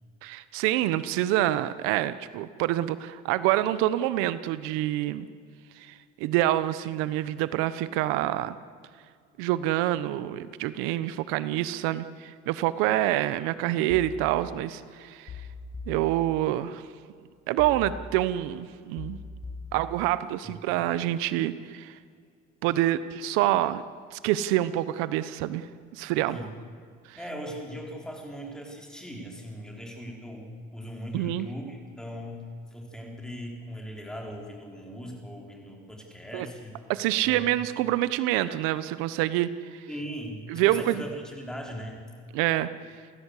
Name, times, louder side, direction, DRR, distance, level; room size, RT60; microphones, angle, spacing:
voice 1, 0.2-5.3 5.8-8.6 9.4-15.3 15.9-16.8 17.5-19.2 19.7-21.9 22.6-23.8 24.1-25.7 25.9-26.4 27.1-27.2 31.1-31.5 36.3-36.5 36.9-39.9 40.5-41.0 42.3-42.7, right 14 dB, 85° right, 14 dB, 1.0 m, -27 dB
sound 1, 13.9-14.9 15.3-16.7 17.6-18.6 19.0-20.4 20.8-21.2, left 3 dB, 40° left, 5.9 m, -42 dB
voice 2, 27.2-32.4 32.7-36.7 37.2-37.6 39.9-42.1, equal, 5° left, 0 dB, 4.8 m, -39 dB
29.5 x 16.0 x 8.4 m, 2.2 s
cardioid pair, 145°, 21 cm